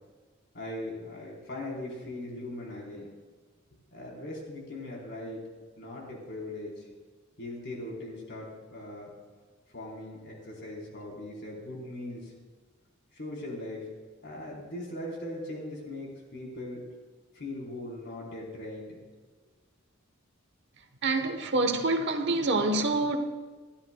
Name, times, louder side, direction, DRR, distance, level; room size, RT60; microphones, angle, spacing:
voice 1, 0.5-3.1 3.9-5.4 5.8-6.8 7.4-9.1 9.7-12.3 13.1-13.9 14.2-16.8 17.3-19.0, left 1 dB, 60° left, 3.8 m, -39 dB
voice 2, 21.0-23.2, right 2 dB, 60° right, 1.0 m, -26 dB
28.5 x 11.5 x 2.3 m
head